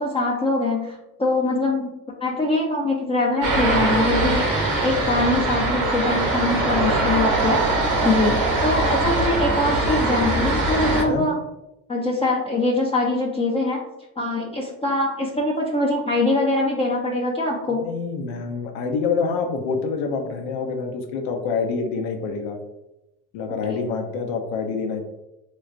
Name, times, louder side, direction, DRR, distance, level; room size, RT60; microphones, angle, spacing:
voice 1, 0.0-1.9 2.2-4.5 4.8-7.6 8.0-11.4 11.9-13.8 14.2-17.9 23.7-23.8, left 2 dB, 15° left, -3 dB, 0.5 m, -23 dB
sound 1, 3.4-11.0, right 2 dB, 90° right, 1.2 m, -22 dB
voice 2, 6.7-7.0 10.9-11.3 17.8-22.6 23.3-25.1, left 5 dB, 90° left, 4 dB, 0.7 m, -26 dB
3.1 x 3.1 x 2.4 m, 0.93 s
supercardioid pair, 90°, 36 cm